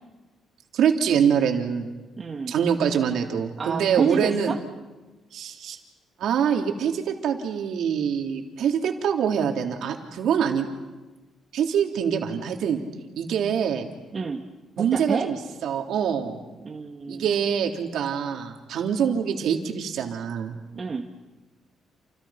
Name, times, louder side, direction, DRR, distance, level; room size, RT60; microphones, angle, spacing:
voice 1, 0.7-1.9 2.5-4.6 5.3-5.8 6.2-10.7 11.5-12.8 13.2-13.9 14.8-16.4 17.1-20.6, right 7 dB, 75° right, 2 dB, 3.5 m, -24 dB
voice 2, 2.2-2.6 3.6-4.5 14.1-14.4 14.8-15.3 16.6-17.3 20.8-21.1, right 4 dB, 35° right, 2 dB, 1.9 m, -29 dB
29.5 x 29.0 x 6.0 m, 1.2 s
cardioid pair, 90°, 0 cm